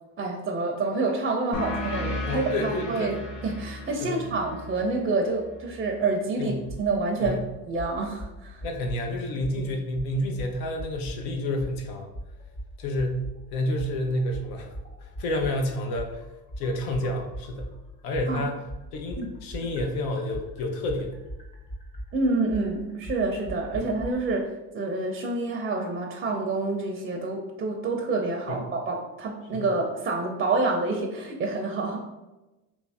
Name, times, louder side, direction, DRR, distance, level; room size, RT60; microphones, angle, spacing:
voice 1, 0.2-3.2 3.4-7.4 7.7-8.6 18.3-18.4 19.2-19.3 22.1-32.0, right 3 dB, 25° right, 2 dB, 0.5 m, -28 dB
sound 1, 1.5-6.7, left 1 dB, 45° left, 0.9 m, -36 dB
voice 2, 2.2-3.1 4.0-4.2 6.4-6.6 7.2-7.4 8.6-12.1 12.8-13.3 13.5-14.7 15.0-16.2 16.6-17.7 18.0-18.6 18.9-21.1 23.7-23.9 28.5-28.6 29.5-29.6, left 1 dB, 75° left, 3 dB, 0.8 m, -29 dB
sound 2, 6.7-6.8 7.2-7.4 7.8-9.0 9.4-9.6 9.9-11.2 11.6-11.8 12.1-13.4 13.8-17.8 18.1-24.1, equal, 15° left, 0.7 m, -39 dB
3.0 x 2.6 x 3.4 m, 1.0 s
supercardioid pair, 90°, 40 cm